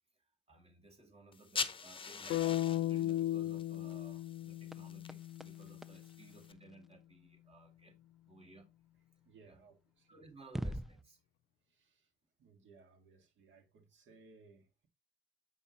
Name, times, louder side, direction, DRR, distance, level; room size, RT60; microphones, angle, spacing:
voice 1, 0.5-8.0 8.3-8.7 9.5-9.6 10.1-11.2, right 3 dB, 30° right, 2.2 m, -58 dB
sound 1, 1.3-6.5, left 5 dB, 25° left, 0.7 m, -45 dB
sound 2, 2.3-6.3, left 13 dB, 85° left, 0.4 m, -36 dB
sound 3, 2.7-7.4 9.6-9.7 10.4-11.0, right 1 dB, ahead, 0.3 m, -47 dB
voice 2, 9.2-10.2 11.7-12.1 12.4-14.9, right 4 dB, 70° right, 1.8 m, -62 dB
7.7 x 5.5 x 2.9 m
cardioid pair, 90°, 20 cm